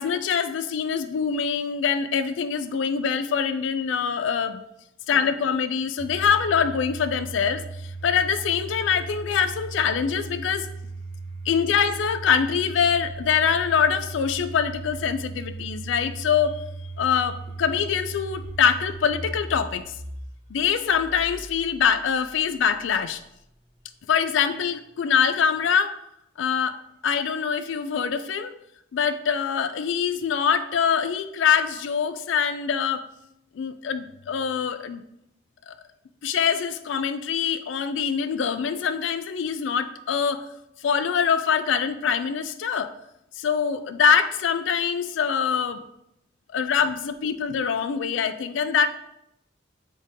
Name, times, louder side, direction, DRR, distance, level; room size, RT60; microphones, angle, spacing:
voice 1, 0.0-4.6 5.1-7.6 8.0-10.7 11.5-16.6 17.0-19.8 20.5-23.2 24.1-26.0 26.4-28.5 28.9-33.0 33.5-35.0 35.7-35.8 36.2-40.5 40.8-42.9 43.4-45.8 46.5-48.9, left 7 dB, 85° left, 12 dB, 0.3 m, -24 dB
Domestic sounds home sounds, 6.0-22.9, right 3 dB, 25° right, 0.6 m, -38 dB
4.4 x 3.3 x 3.5 m, 0.81 s
head